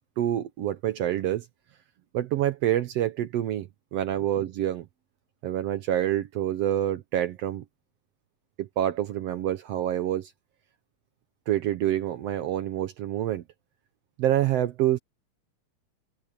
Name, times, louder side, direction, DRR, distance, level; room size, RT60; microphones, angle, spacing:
voice 1, 0.2-1.5 2.1-4.9 5.4-7.6 8.6-10.3 11.5-13.4 14.2-15.0, right 12 dB, 80° right, 1.4 m, -27 dB
omnidirectional pair, 3.8 m